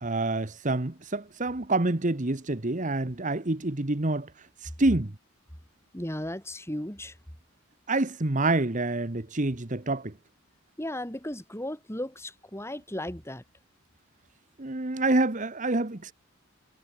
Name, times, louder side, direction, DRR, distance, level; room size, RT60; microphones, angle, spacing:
voice 1, 0.0-4.3 4.6-5.1 7.9-10.1 14.6-16.1, right 2 dB, 35° right, 1.2 m, -27 dB
voice 2, 5.9-7.2 10.8-13.4, left 1 dB, 10° left, 3.0 m, -35 dB
head